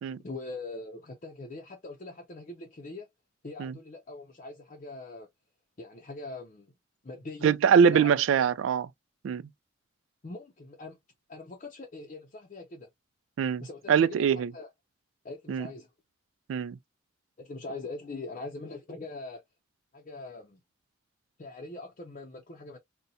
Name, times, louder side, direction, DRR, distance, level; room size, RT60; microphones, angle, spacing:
voice 1, 0.2-3.1 3.4-5.3 5.8-6.7 7.0-7.5 7.9-8.2 10.2-11.0 11.3-12.9 13.6-14.3 14.5-14.7 15.2-15.9 17.4-19.4 19.9-20.6 21.4-22.8, left 2 dB, 40° left, 0.5 m, -42 dB
voice 2, 7.4-8.9 9.2-9.4 13.4-13.6 13.9-14.5 15.5-15.7 16.5-16.8, right 7 dB, 80° right, 0.3 m, -23 dB
4.1 x 2.1 x 2.5 m
head